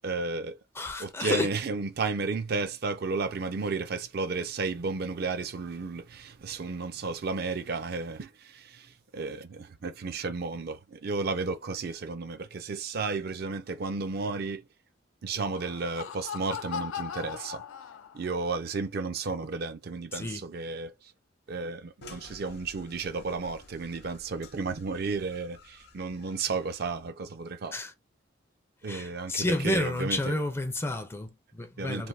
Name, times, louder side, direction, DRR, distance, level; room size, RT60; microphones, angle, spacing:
voice 1, 0.0-0.6 1.0-14.6 15.2-17.6 18.1-20.9 21.5-27.8 28.8-30.4 31.8-32.1, right 4 dB, 55° right, 0.4 m, -33 dB
voice 2, 0.8-1.5 20.1-20.4 27.7-27.9 28.9-32.1, left 2 dB, 15° left, 0.4 m, -31 dB
Laughter, 15.2-18.4, left 8 dB, 90° left, 0.4 m, -39 dB
sound 1, 22.0-27.1, left 2 dB, 60° left, 0.7 m, -52 dB
3.3 x 2.5 x 2.4 m
head